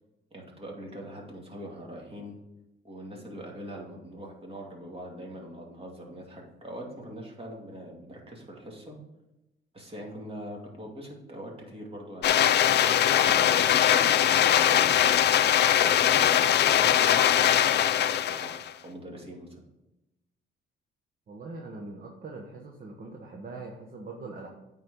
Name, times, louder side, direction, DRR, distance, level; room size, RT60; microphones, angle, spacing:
voice 1, 0.3-2.4 2.8-8.9 9.7-15.2 15.8-18.5 18.8-19.6, right 1 dB, 30° right, -1 dB, 2.4 m, -42 dB
sound 1, 12.2-18.7, left 10 dB, 60° left, 0.5 m, -21 dB
voice 2, 21.3-24.5, right 3 dB, 45° right, 0 dB, 1.2 m, -42 dB
8.9 x 4.3 x 5.4 m, 0.95 s
cardioid pair, 90°, 20 cm